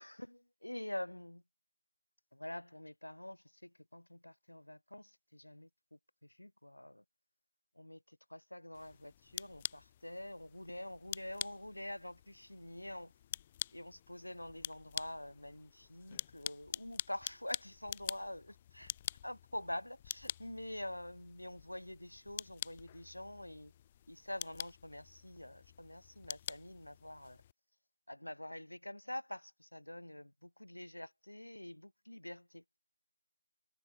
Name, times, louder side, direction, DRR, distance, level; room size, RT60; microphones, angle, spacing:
voice 1, 0.0-1.4 2.3-5.7 6.4-7.0 7.8-8.0 8.3-13.1 13.7-18.4 19.2-23.7 24.1-27.4 28.1-32.6, left 1 dB, 75° left, 3.1 m, -46 dB
sound 1, 8.7-27.5, left 11 dB, 15° left, 5.2 m, -47 dB
figure-of-eight pair, 165°, 0 cm